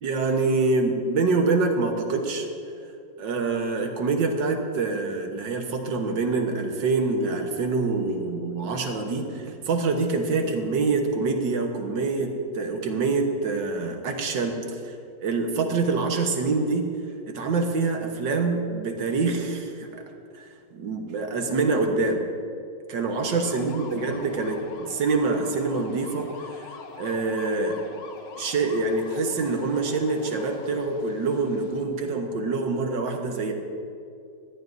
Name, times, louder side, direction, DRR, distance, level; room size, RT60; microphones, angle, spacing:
voice 1, 0.0-2.5 3.2-15.0 15.2-16.9 17.3-20.0 20.3-20.4 20.7-22.2 22.9-26.7 27.0-27.8 28.4-33.5, right 3 dB, 85° right, 3 dB, 1.9 m, -25 dB
sound 1, 23.3-31.8, left 5 dB, 85° left, 1.7 m, -44 dB
21.0 x 14.0 x 2.7 m, 2.5 s
omnidirectional pair, 1.9 m